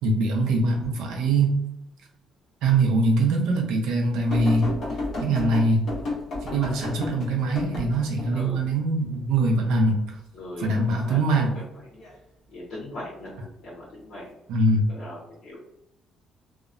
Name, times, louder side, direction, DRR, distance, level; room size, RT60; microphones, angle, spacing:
voice 1, 0.0-1.5 2.6-4.7 5.2-5.8 6.5-10.2 10.6-11.5 14.5-14.8, right 2 dB, 90° right, 1 dB, 0.6 m, -22 dB
sound 1, 4.3-8.3 11.7-12.1 13.2-13.3, left 2 dB, 40° left, 0.9 m, -31 dB
voice 2, 8.3-8.6 10.3-11.3 11.5-12.0 12.5-14.4 14.9-15.6, left 1 dB, 70° left, -7 dB, 0.8 m, -40 dB
2.8 x 2.0 x 2.4 m, 0.89 s
cardioid pair, 175°, 0 cm